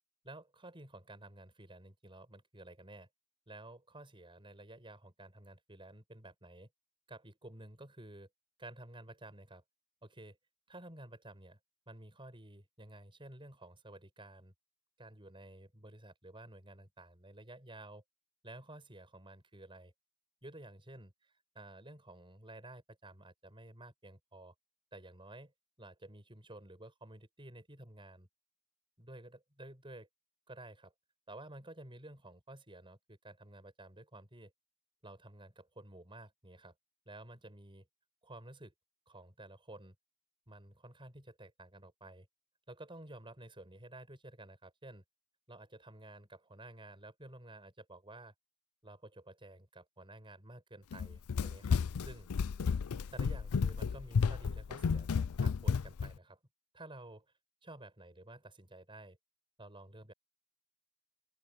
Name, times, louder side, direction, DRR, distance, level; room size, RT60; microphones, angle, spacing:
voice 1, 0.2-3.1 3.5-6.7 7.1-8.3 8.6-9.6 10.0-10.4 10.7-11.6 11.9-14.5 15.0-18.0 18.4-19.9 20.4-24.5 24.9-25.5 25.8-28.3 29.0-30.1 30.5-30.9 31.3-34.5 35.0-36.7 37.1-37.9 38.2-38.7 39.1-40.0 40.5-42.3 42.7-45.0 45.5-48.3 48.8-52.3 53.1-55.1 55.4-56.4 56.7-57.3 57.6-59.2 59.6-60.1, right 1 dB, 25° right, 7.1 m, -52 dB
Run, 50.9-56.1, left 5 dB, 80° left, 0.5 m, -32 dB
open air
head